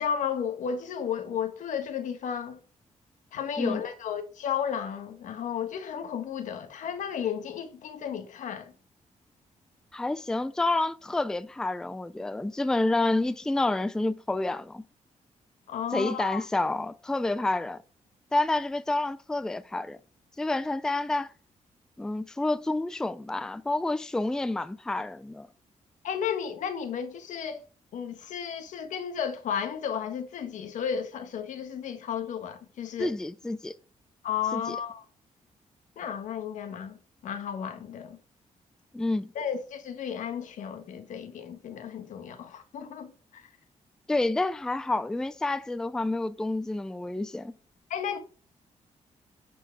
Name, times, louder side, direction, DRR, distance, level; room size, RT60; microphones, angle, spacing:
voice 1, 0.0-2.6 3.3-8.7 15.7-16.5 26.0-27.6 27.9-33.1 34.2-35.0 36.0-38.2 39.3-43.5 47.9-48.2, left 8 dB, 85° left, 1.4 m, -33 dB
voice 2, 9.9-14.8 15.9-17.8 18.3-20.0 20.4-21.3 22.0-25.5 33.0-33.7 34.5-34.8 38.9-39.3 44.1-47.5, left 2 dB, 5° left, 0.4 m, -29 dB
9.9 x 4.6 x 4.6 m
wide cardioid pair, 165°, 13 cm